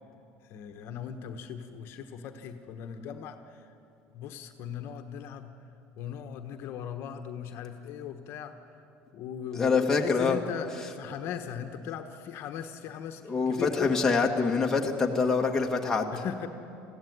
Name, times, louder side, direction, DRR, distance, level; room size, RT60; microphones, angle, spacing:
voice 1, 0.4-3.7 4.1-5.5 6.0-8.5 9.1-14.0 16.1-16.5, left 8 dB, 55° left, 6 dB, 1.1 m, -38 dB
voice 2, 9.5-10.4 13.2-16.1, left 4 dB, 10° left, 0 dB, 1.6 m, -25 dB
21.0 x 15.5 x 9.4 m, 2.8 s
cardioid pair, 155°, 5 cm